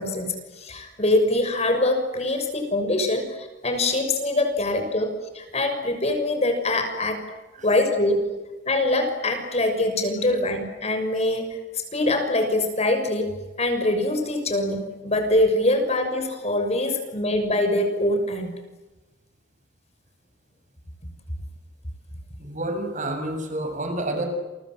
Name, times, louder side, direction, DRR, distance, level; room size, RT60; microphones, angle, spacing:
voice 1, 0.0-7.2 7.6-8.3 8.7-13.3 13.6-18.5, left 1 dB, 35° left, 6 dB, 6.5 m, -24 dB
voice 2, 22.4-24.3, right 1 dB, 45° right, 5 dB, 7.1 m, -29 dB
29.5 x 25.0 x 7.9 m, 1.1 s
head